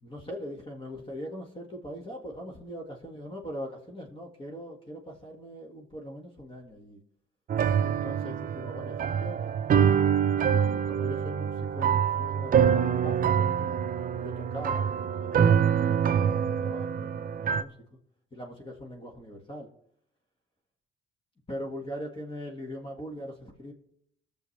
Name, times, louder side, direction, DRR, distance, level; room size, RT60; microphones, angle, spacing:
voice 1, 0.0-7.0 7.8-9.5 10.4-13.8 14.1-17.8 18.3-19.7 21.5-23.7, equal, 25° left, 1 dB, 1.8 m, -41 dB
sound 1, 7.5-17.6, right 8 dB, 45° right, 0.5 m, -25 dB
20.0 x 6.9 x 3.3 m, 0.75 s
cardioid pair, 90°, 20 cm